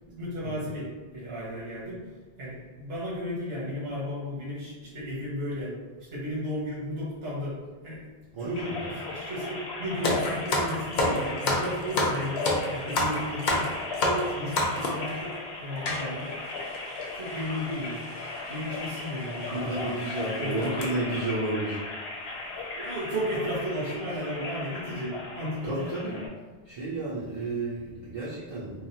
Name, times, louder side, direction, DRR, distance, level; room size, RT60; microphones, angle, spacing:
voice 1, 0.1-2.1 2.4-5.7 6.1-8.1 8.4-13.7 14.0-16.3 17.1-18.0 18.5-19.9 20.4-20.9 22.7-25.8, equal, 70° right, -8 dB, 1.3 m, -34 dB
voice 2, 8.3-8.8 19.5-21.8 25.6-26.3 26.6-28.9, right 2 dB, 40° right, -9 dB, 0.6 m, -32 dB
sound 1, 8.5-26.3, left 3 dB, 90° left, 1.0 m, -37 dB
sound 2, 10.0-15.1 15.9-16.0 16.7-16.8 17.0-17.2 18.2-18.4 18.8-19.0 19.5-19.6 20.0-20.2 20.6-20.8, left 1 dB, 55° left, 0.7 m, -27 dB
3.2 x 2.4 x 2.7 m, 1.4 s
omnidirectional pair, 1.0 m